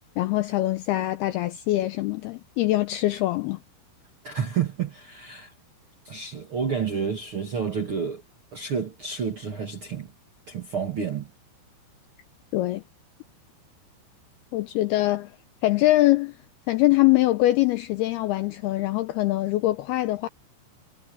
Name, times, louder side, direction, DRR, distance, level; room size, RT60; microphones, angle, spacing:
voice 1, 0.2-3.6 12.5-12.8 14.5-15.3 15.6-16.3 16.7-20.3, left 17 dB, 80° left, 2.3 m, -23 dB
voice 2, 4.2-5.5 6.0-8.2 8.5-10.1 10.5-11.3, right 6 dB, 55° right, 1.6 m, -30 dB
omnidirectional pair, 5.2 m